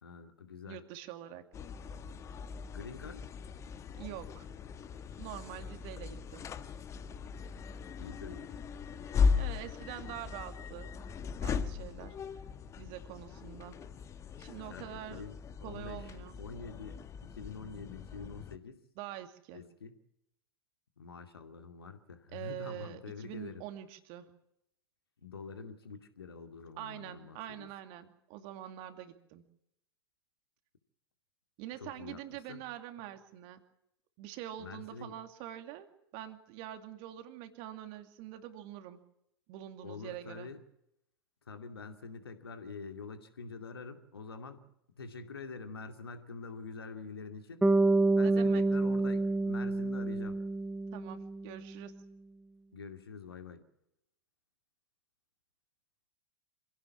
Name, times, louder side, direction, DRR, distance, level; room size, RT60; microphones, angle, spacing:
voice 1, 0.0-0.8 2.7-3.3 8.0-8.6 14.5-16.1 16.4-17.0 17.3-18.8 19.5-20.0 21.0-23.7 25.2-27.7 31.8-32.2 32.5-32.6 34.6-35.2 39.8-40.6 41.5-44.6 44.9-47.6 48.1-50.4 52.7-53.7, left 4 dB, 75° left, 7 dB, 2.5 m, -46 dB
voice 2, 0.7-1.4 4.0-4.5 5.2-6.5 9.4-10.9 11.4-12.1 12.8-13.7 14.4-15.2 15.6-16.4 19.0-19.6 22.3-24.3 26.8-29.4 31.6-33.6 34.2-39.0 39.5-40.5 48.2-48.6 50.9-51.9, right 12 dB, 45° right, 8 dB, 2.5 m, -45 dB
sound 1, 1.5-18.6, left 5 dB, 25° left, 1.3 m, -37 dB
Bass guitar, 47.6-51.7, right 2 dB, 5° right, 0.9 m, -28 dB
26.5 x 16.5 x 7.3 m, 0.79 s
figure-of-eight pair, 95°, 13 cm